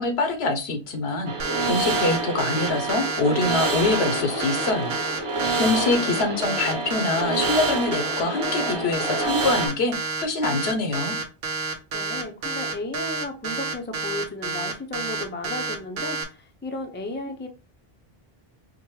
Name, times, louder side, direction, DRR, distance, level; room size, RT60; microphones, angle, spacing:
voice 1, 0.0-5.0 5.6-11.1, left 3 dB, 80° left, 1.1 m, -25 dB
sound 1, 1.3-9.7, right 3 dB, 35° right, 0.7 m, -28 dB
sound 2, 1.4-16.2, right 4 dB, 70° right, 0.9 m, -29 dB
Singing / Musical instrument, 3.2-9.6, left 4 dB, 40° left, 0.8 m, -39 dB
voice 2, 11.9-17.5, left 2 dB, 15° left, 0.4 m, -34 dB
4.9 x 2.2 x 3.1 m
omnidirectional pair, 1.0 m